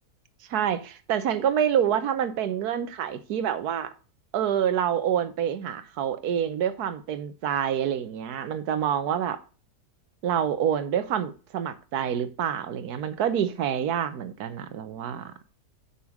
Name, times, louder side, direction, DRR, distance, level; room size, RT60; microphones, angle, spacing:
voice 1, 0.5-3.9 4.3-9.4 10.2-15.3, right 9 dB, 75° right, 1.3 m, -27 dB
7.1 x 5.5 x 6.2 m
omnidirectional pair, 1.7 m